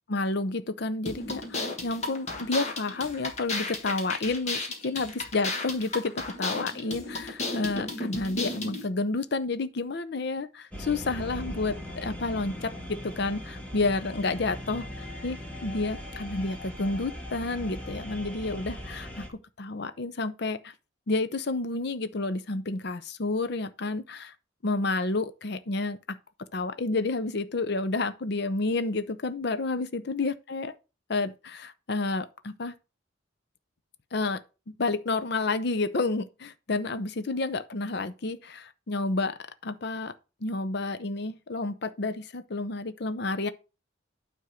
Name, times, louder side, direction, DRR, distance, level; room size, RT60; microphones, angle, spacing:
voice 1, 0.1-20.7 21.1-24.3 24.6-26.2 26.5-30.7 31.1-32.7 34.1-34.4 34.7-40.1 40.4-43.5, left 3 dB, 55° left, 0.6 m, -30 dB
sound 1, 1.0-8.8, left 2 dB, 35° left, 1.6 m, -34 dB
sound 2, 10.7-19.3, equal, 5° left, 1.5 m, -39 dB
9.4 x 3.6 x 6.3 m
head